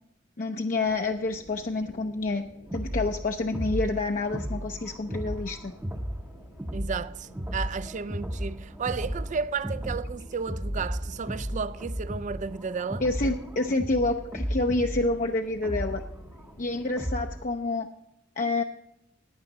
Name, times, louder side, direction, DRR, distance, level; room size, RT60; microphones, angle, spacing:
voice 1, 0.4-2.5 2.7-5.7 13.0-16.0 16.6-17.9 18.4-18.6, left 2 dB, 45° left, 0.6 m, -28 dB
sound 1, 0.8-17.2, left 1 dB, 60° left, 1.4 m, -53 dB
sound 2, 2.7-17.5, equal, 10° right, 0.7 m, -34 dB
voice 2, 6.7-13.0, right 5 dB, 40° right, 0.4 m, -33 dB
15.0 x 9.7 x 4.0 m
head